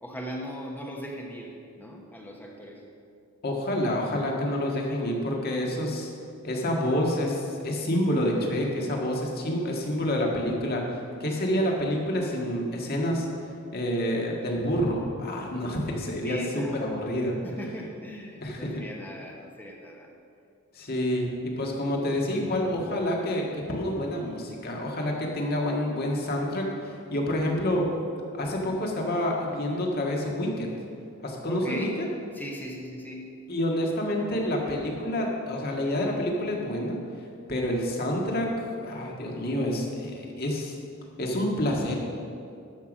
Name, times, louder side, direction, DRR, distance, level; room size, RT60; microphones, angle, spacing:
voice 1, 0.0-2.8 16.2-16.9 17.4-20.1 31.5-32.0 32.3-33.4, equal, 10° left, 0 dB, 1.1 m, -38 dB
voice 2, 3.4-6.1 6.4-13.3 13.7-17.4 18.4-18.7 20.7-27.9 28.3-30.7 31.2-32.1 33.5-37.0 37.5-38.5 38.8-40.7 41.2-41.9, left 1 dB, 45° left, -1 dB, 1.7 m, -28 dB
13.0 x 5.8 x 6.3 m, 2.5 s
head